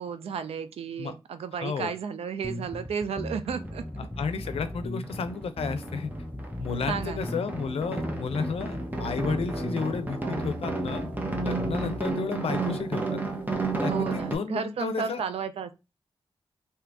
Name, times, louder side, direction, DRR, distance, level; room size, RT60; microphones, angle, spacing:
voice 1, 0.0-3.8 6.9-7.3 13.9-15.7, right 6 dB, 85° right, 0.4 m, -33 dB
voice 2, 1.6-1.9 4.2-6.1 6.6-11.0 11.4-13.2 13.8-15.2, left 5 dB, 80° left, 0.5 m, -32 dB
sound 1, 2.4-12.0, left 1 dB, 15° left, 0.4 m, -37 dB
sound 2, 3.1-3.2 3.6-4.8 5.0-14.4, right 3 dB, 20° right, 0.7 m, -32 dB
2.8 x 2.4 x 3.4 m
cardioid pair, 65°, 10 cm